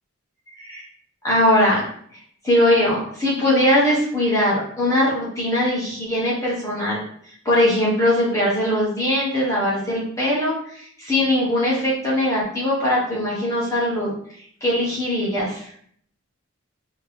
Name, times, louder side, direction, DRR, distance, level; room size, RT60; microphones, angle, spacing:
voice 1, 1.2-1.8 2.4-7.0 7.4-10.5 11.0-14.1 14.6-15.7, left 1 dB, 15° left, -7 dB, 1.3 m, -20 dB
4.8 x 3.0 x 3.4 m, 0.62 s
head